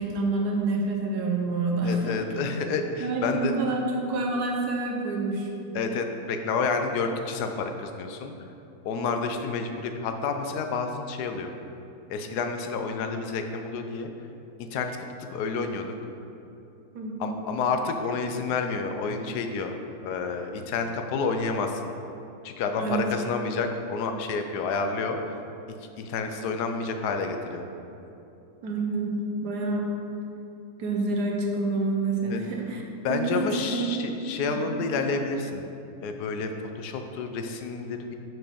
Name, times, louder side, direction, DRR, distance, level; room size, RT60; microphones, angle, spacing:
voice 1, 0.0-2.2 3.0-5.5 16.9-17.4 22.8-23.1 28.6-29.9 30.8-32.8 33.1-33.9 34.5-34.8, right 3 dB, 75° right, 0 dB, 1.4 m, -28 dB
voice 2, 1.8-3.5 5.7-8.3 8.8-11.5 12.1-14.1 14.6-15.0 15.3-15.9 17.2-21.8 22.4-25.2 26.0-27.7 32.3-32.4 33.0-35.7 36.0-38.2, left 4 dB, 80° left, 6 dB, 1.1 m, -29 dB
6.2 x 4.7 x 5.0 m, 2.8 s
omnidirectional pair, 1.7 m